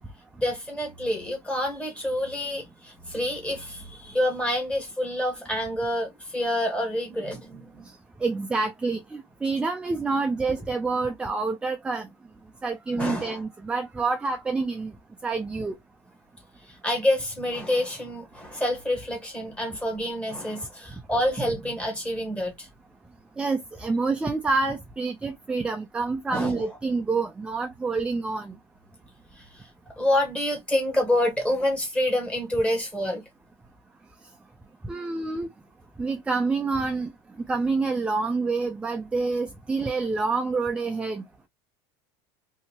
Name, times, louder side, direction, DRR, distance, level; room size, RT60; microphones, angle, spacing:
voice 1, 0.4-7.9 12.9-13.4 16.8-22.7 26.3-26.6 30.0-33.2 39.8-39.9, left 1 dB, 10° left, 1.4 m, -27 dB
voice 2, 7.8-12.1 12.6-15.0 15.2-15.8 23.4-28.6 34.8-35.5 36.0-41.5, right 3 dB, 10° right, 0.3 m, -27 dB
2.7 x 2.7 x 2.8 m
supercardioid pair, 145°, 13 cm